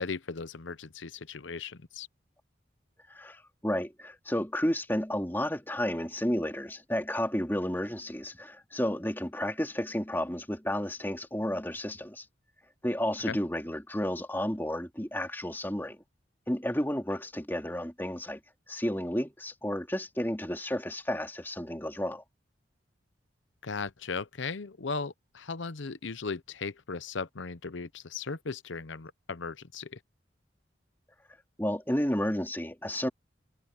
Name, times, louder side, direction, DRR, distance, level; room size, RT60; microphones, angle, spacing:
voice 1, 0.0-2.1 13.3-13.4 23.6-30.0, left 4 dB, 80° left, 0.8 m, -37 dB
voice 2, 3.1-12.2 12.8-16.0 16.5-18.4 18.7-22.2 31.6-33.1, equal, 10° left, 2.8 m, -32 dB
head